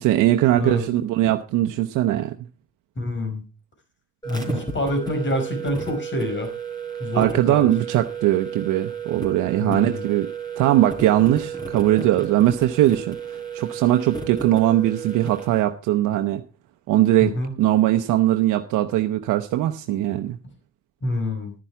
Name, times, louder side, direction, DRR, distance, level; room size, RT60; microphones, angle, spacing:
voice 1, 0.0-2.4 7.1-16.4 16.9-20.4, right 13 dB, 90° right, 6 dB, 0.8 m, -20 dB
voice 2, 0.5-0.8 3.0-3.4 4.2-6.5 7.0-7.7 9.6-10.0 17.2-17.5 21.0-21.5, left 1 dB, 40° left, 6 dB, 4.7 m, -26 dB
sound 1, 4.2-15.6, right 6 dB, 15° left, 4.2 m, -33 dB
11.5 x 10.0 x 4.6 m, 0.31 s
cardioid pair, 90°, 30 cm